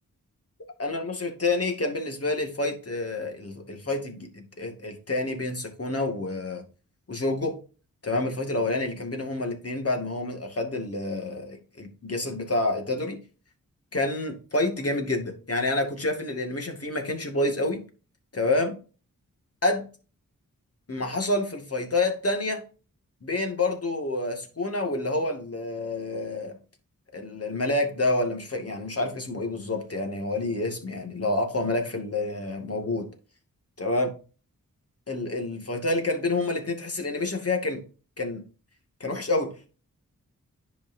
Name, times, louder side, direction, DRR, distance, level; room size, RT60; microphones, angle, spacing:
voice 1, 0.8-6.6 7.1-7.6 8.0-13.2 13.9-17.8 18.3-18.8 19.6-19.8 20.9-22.6 23.2-26.6 27.1-33.1 33.8-34.1 35.1-37.8 38.2-38.4 39.0-39.5, left 2 dB, 45° left, 3 dB, 2.1 m, -28 dB
10.0 x 5.9 x 2.7 m, 0.35 s
wide cardioid pair, 65°, 34 cm